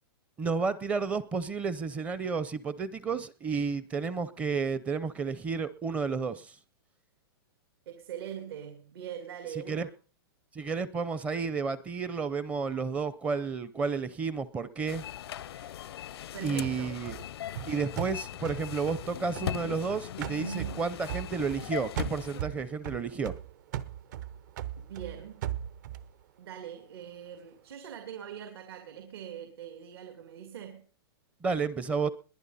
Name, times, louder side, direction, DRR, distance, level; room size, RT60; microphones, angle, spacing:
voice 1, 0.4-6.5 9.7-9.9 10.5-15.0 16.4-17.2 17.7-23.3 31.4-32.1, right 5 dB, 10° right, 0.6 m, -31 dB
voice 2, 7.9-10.0 16.3-17.0 20.4-20.9 24.8-25.4 26.4-30.8, right 9 dB, 70° right, 2.5 m, -42 dB
sound 1, 14.9-22.4, left 11 dB, 75° left, 0.6 m, -39 dB
sound 2, 16.6-19.9 20.2-21.7 22.0-26.1, right 12 dB, 45° right, 0.8 m, -39 dB
21.5 x 10.0 x 4.1 m
supercardioid pair, 170°, 13 cm